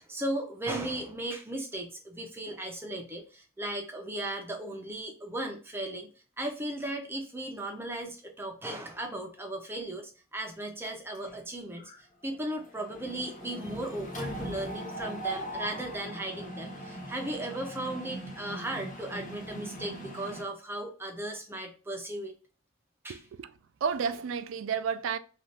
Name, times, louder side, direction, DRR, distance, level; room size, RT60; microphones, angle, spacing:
voice 1, 0.0-6.1 6.4-11.9 12.2-22.3 23.0-23.2, right 1 dB, 10° right, 0.6 m, -36 dB
Mechanisms, 10.8-11.4 11.8-12.0 12.2-20.4, right 1 dB, 40° left, 0.8 m, -40 dB
voice 2, 23.1-23.5 23.8-25.2, right 6 dB, 70° right, 0.3 m, -31 dB
2.7 x 2.4 x 3.2 m
head